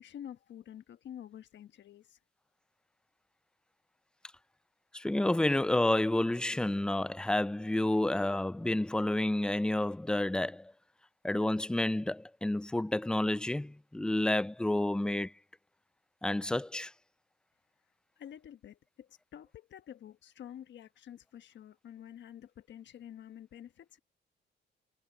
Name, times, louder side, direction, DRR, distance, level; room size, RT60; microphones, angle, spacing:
voice 1, 0.0-2.2 18.2-24.0, left 10 dB, 65° left, 1.2 m, -49 dB
voice 2, 4.9-10.7 11.2-15.3 16.2-16.9, left 1 dB, 5° left, 0.3 m, -30 dB
cardioid pair, 90°, 20 cm